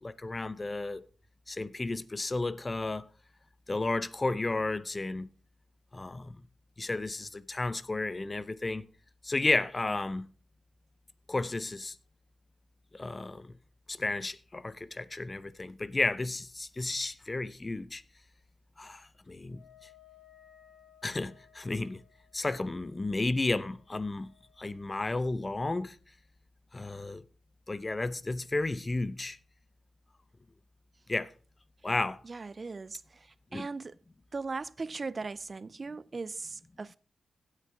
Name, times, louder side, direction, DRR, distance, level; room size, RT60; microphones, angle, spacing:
voice 1, 0.0-1.0 1.5-3.1 3.7-5.3 5.9-6.4 6.8-8.9 9.2-10.3 11.3-11.9 12.9-13.5 13.9-18.0 18.8-19.7 21.0-22.0 22.3-24.3 24.6-26.0 26.7-27.2 27.7-29.4 31.1-31.3 31.8-32.2 33.5-33.7, left 2 dB, 30° left, 0.6 m, -32 dB
Wind instrument woodwind instrument, 19.5-25.2, left 10 dB, 60° left, 2.6 m, -61 dB
voice 2, 32.2-34.0 34.3-37.0, right 4 dB, 40° right, 0.4 m, -39 dB
16.5 x 6.5 x 3.5 m
cardioid pair, 60°, 0 cm